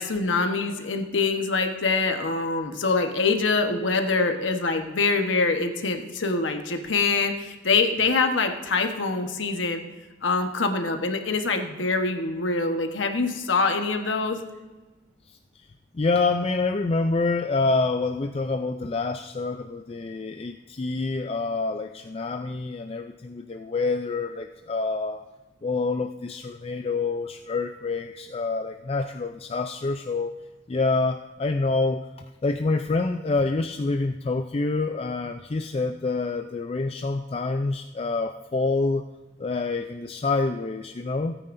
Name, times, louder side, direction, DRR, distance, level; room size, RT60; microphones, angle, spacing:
voice 1, 0.0-9.8 10.2-14.4, left 4 dB, 80° left, 5 dB, 1.1 m, -24 dB
voice 2, 15.3-15.7 15.9-25.2 25.6-30.3 30.7-39.0 39.4-41.4, left 3 dB, 30° left, 6 dB, 0.4 m, -27 dB
17.0 x 9.1 x 2.6 m, 1.2 s
head